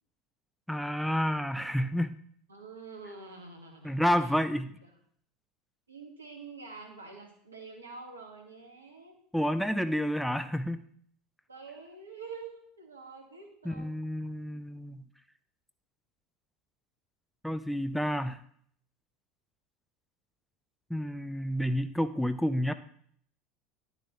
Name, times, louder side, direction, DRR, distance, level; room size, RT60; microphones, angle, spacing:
voice 1, 0.7-2.1 3.8-4.7 9.3-10.8 13.6-15.0 17.4-18.4 20.9-22.7, equal, ahead, 10 dB, 0.5 m, -29 dB
voice 2, 2.5-4.3 4.8-4.9 5.9-9.2 11.5-13.9, right 4 dB, 85° right, 2 dB, 1.6 m, -47 dB
11.0 x 6.7 x 3.0 m, 0.63 s
figure-of-eight pair, 75°, 0 cm